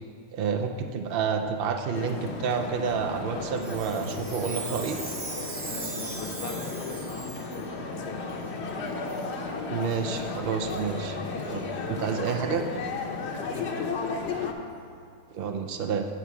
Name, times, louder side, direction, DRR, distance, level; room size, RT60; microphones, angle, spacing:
voice 1, 0.3-5.0 9.7-12.6 15.3-16.1, right 6 dB, 85° right, 5 dB, 0.5 m, -29 dB
sound 1, 1.9-14.5, left 4 dB, 55° left, 0.8 m, -34 dB
Chime, 3.6-7.6 8.3-8.4 9.1-9.3 9.8-10.0 10.7-10.8 11.4-11.5 12.3-12.4, right 4 dB, 65° right, 1.6 m, -39 dB
voice 2, 5.5-8.4 11.6-11.9 13.3-13.8, left 4 dB, 70° left, 3 dB, 1.2 m, -42 dB
8.2 x 4.7 x 7.1 m, 2.3 s
omnidirectional pair, 1.6 m